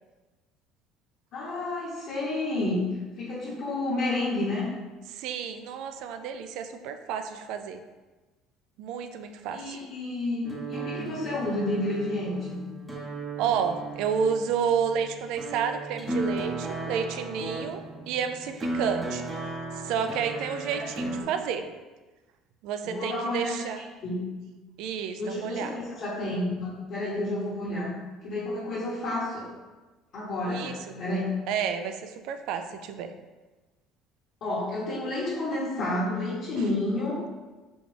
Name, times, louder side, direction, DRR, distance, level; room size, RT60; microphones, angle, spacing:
voice 1, 1.3-2.8 3.2-4.7 9.5-12.6 20.7-21.1 22.8-23.6 24.0-24.2 25.1-27.9 28.2-29.5 30.1-31.3 34.4-37.2, left 2 dB, 60° left, -9 dB, 1.1 m, -30 dB
voice 2, 5.1-7.8 8.8-9.8 13.4-19.2 19.7-21.7 22.6-23.8 24.8-25.7 30.5-31.0 31.5-33.1, right 7 dB, 75° right, 8 dB, 0.3 m, -30 dB
sound 1, 10.4-21.2, right 2 dB, 15° right, 0.7 m, -35 dB
4.0 x 2.3 x 3.3 m, 1.2 s
cardioid pair, 115°, 0 cm